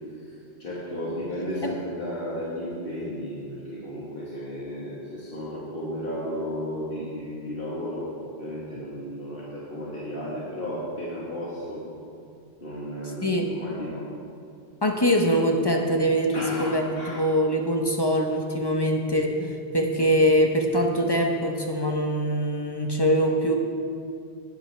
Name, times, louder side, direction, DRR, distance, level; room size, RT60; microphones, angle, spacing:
voice 1, 0.2-11.9 12.6-14.1 16.3-17.2, equal, 55° left, -7 dB, 1.7 m, -34 dB
voice 2, 14.8-16.8 17.1-23.5, equal, 25° left, 1 dB, 0.8 m, -23 dB
18.5 x 7.6 x 3.3 m, 2.4 s
omnidirectional pair, 1.1 m